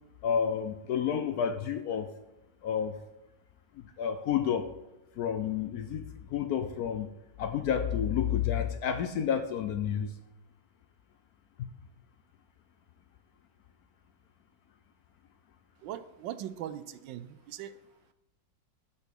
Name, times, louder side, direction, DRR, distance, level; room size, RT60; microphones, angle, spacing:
voice 1, 0.2-2.1 2.6-3.0 4.0-4.7 5.2-7.1 7.4-10.1, left 8 dB, 70° left, 8 dB, 0.9 m, -30 dB
voice 2, 15.8-17.8, right 11 dB, 85° right, 13 dB, 1.3 m, -40 dB
6.1 x 5.6 x 6.9 m, 0.95 s
omnidirectional pair, 2.0 m